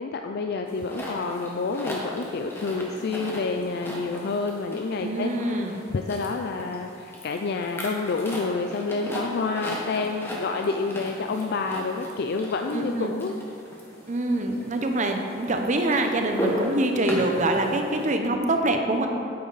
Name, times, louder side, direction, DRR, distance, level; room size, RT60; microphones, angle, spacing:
voice 1, 0.0-5.3 5.9-13.3 14.4-14.5, left 4 dB, 55° left, 4 dB, 0.4 m, -28 dB
sound 1, 0.7-18.2, equal, 10° left, 1.3 m, -37 dB
voice 2, 5.0-5.8 12.7-13.1 14.1-19.1, right 1 dB, 40° right, 4 dB, 0.8 m, -25 dB
8.7 x 8.5 x 4.0 m, 2.6 s
head